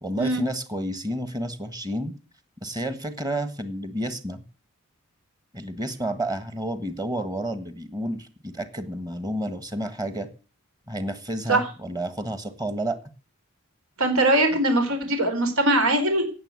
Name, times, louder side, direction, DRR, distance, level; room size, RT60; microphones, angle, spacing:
voice 1, 0.0-2.1 2.6-4.4 5.5-10.3 10.9-13.0, right 1 dB, 15° right, 11 dB, 1.5 m, -30 dB
voice 2, 14.0-16.2, right 1 dB, 75° right, 6 dB, 4.4 m, -21 dB
17.0 x 7.1 x 9.6 m, 0.37 s
head